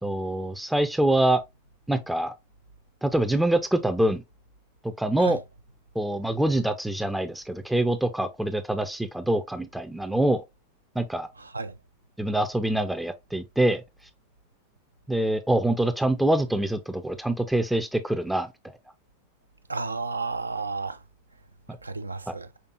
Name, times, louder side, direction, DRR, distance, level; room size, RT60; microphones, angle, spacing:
voice 1, 0.0-1.4 1.9-2.3 3.0-4.2 5.0-5.4 6.0-10.4 11.0-11.3 12.2-13.8 15.1-18.5 22.3-22.4, right 1 dB, 5° right, 0.4 m, -25 dB
voice 2, 11.4-11.7 19.7-21.0 21.8-22.5, right 3 dB, 80° right, 0.4 m, -32 dB
5.6 x 3.4 x 2.4 m
figure-of-eight pair, 90°, 0 cm